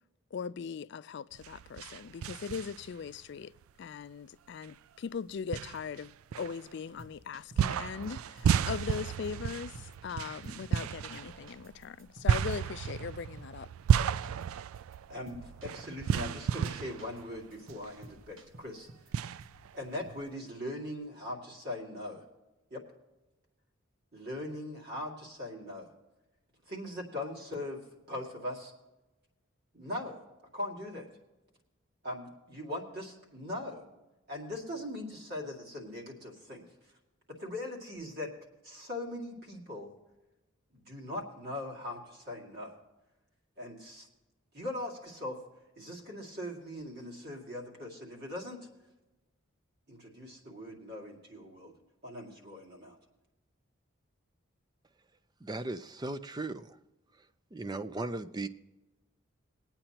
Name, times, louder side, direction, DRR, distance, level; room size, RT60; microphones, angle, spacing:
voice 1, 0.3-3.5 3.8-13.7, left 6 dB, 55° left, 0.3 m, -40 dB
sound 1, 1.3-3.1 3.6-3.7 4.6-4.7 5.5-7.0 7.6-17.9 18.3-18.4 19.1-20.2, right 8 dB, 90° right, 0.3 m, -32 dB
sound 2, 7.0-8.1 8.4-8.9 9.2-9.3 9.7-10.9 11.1-13.6 13.9-14.5 14.7-15.0 15.3-16.3 16.6-17.2 17.5-19.1 19.4-19.7, right 1 dB, 70° right, 1.2 m, -54 dB
voice 2, 15.1-18.9 19.7-22.2 22.7-22.8 24.1-25.9 26.7-28.7 29.7-30.2 30.5-31.1 32.0-33.8 34.3-36.7 37.3-38.3 38.6-39.9 40.7-42.8 43.6-44.1 44.5-45.4 45.8-48.6 49.9-51.7 52.0-53.0, left 1 dB, 50° right, 2.3 m, -40 dB
voice 3, 55.4-56.8 57.5-58.5, right 2 dB, 20° right, 0.4 m, -37 dB
21.5 x 8.8 x 2.9 m
head